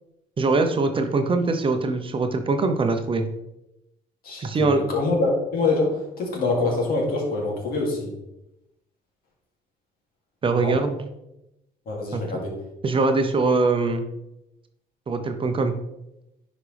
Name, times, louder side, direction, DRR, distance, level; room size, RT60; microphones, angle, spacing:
voice 1, 0.4-3.2 4.4-4.8 10.4-11.0 12.1-12.2 12.8-14.0 15.1-15.7, right 3 dB, 30° right, 6 dB, 0.8 m, -22 dB
voice 2, 4.2-8.1 10.6-10.8 11.9-12.6, left 3 dB, 60° left, -1 dB, 2.7 m, -25 dB
10.0 x 5.1 x 3.4 m, 0.88 s
cardioid pair, 110°, 17 cm